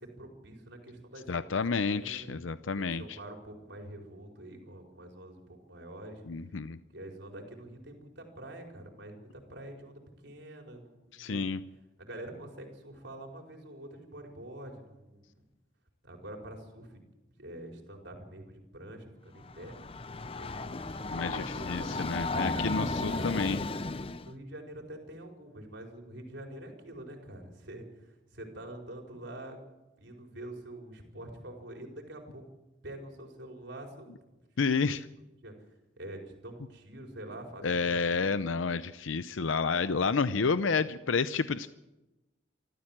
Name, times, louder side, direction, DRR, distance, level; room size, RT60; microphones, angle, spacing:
voice 1, 0.0-2.4 2.8-6.2 6.9-11.4 12.0-15.4 16.0-17.0 17.4-19.7 20.4-23.3 24.2-29.6 30.0-32.4 32.8-34.4 35.0-35.1 35.4-35.5 36.0-38.4 39.9-40.2 40.7-40.9, right 1 dB, 65° right, 2 dB, 4.9 m, -46 dB
voice 2, 1.3-3.2 6.3-6.8 11.2-11.6 21.1-23.6 34.6-35.1 37.6-41.7, left 4 dB, 85° left, 13 dB, 0.6 m, -30 dB
Train, 19.4-24.3, left 3 dB, 30° left, 0.6 m, -34 dB
25.0 x 14.5 x 7.5 m, 1.0 s
head